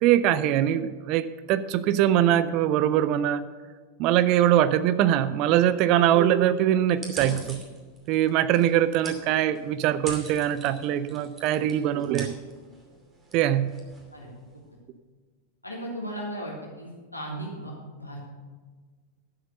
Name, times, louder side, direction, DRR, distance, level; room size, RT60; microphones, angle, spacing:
voice 1, 0.0-3.4 4.0-7.6 8.1-12.3 13.3-13.8, right 11 dB, 40° right, 15 dB, 0.5 m, -22 dB
sound 1, 6.9-14.7, right 2 dB, 20° right, 2.7 m, -44 dB
voice 2, 15.6-18.2, right 1 dB, 85° left, -3 dB, 3.1 m, -36 dB
12.0 x 7.7 x 6.8 m, 1.4 s
figure-of-eight pair, 90°, 0 cm